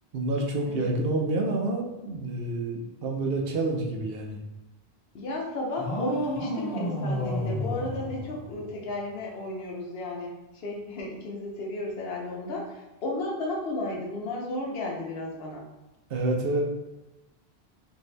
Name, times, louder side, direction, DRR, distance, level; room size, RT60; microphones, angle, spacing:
voice 1, 0.1-4.4 16.1-16.6, right 2 dB, 70° right, 1 dB, 0.8 m, -28 dB
voice 2, 5.1-15.6, left 2 dB, 75° left, -1 dB, 0.9 m, -34 dB
sound 1, 5.8-8.9, left 1 dB, 40° left, 0.7 m, -31 dB
2.7 x 2.6 x 3.2 m, 1.0 s
omnidirectional pair, 1.0 m